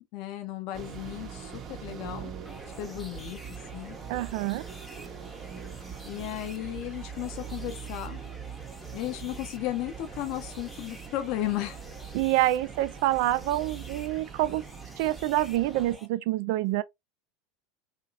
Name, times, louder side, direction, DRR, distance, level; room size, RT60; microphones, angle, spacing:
voice 1, 0.1-2.3 2.8-3.4 3.7-4.0 6.1-8.2 8.9-11.8, left 14 dB, 55° left, 0.6 m, -34 dB
sound 1, 0.7-16.0, right 7 dB, 35° right, 0.7 m, -42 dB
sound 2, 2.4-16.1, equal, 10° left, 0.7 m, -49 dB
voice 2, 4.1-4.6 12.1-14.6 15.0-16.8, right 15 dB, 60° right, 0.3 m, -27 dB
2.8 x 2.5 x 2.4 m
hypercardioid pair, 80°, 0 cm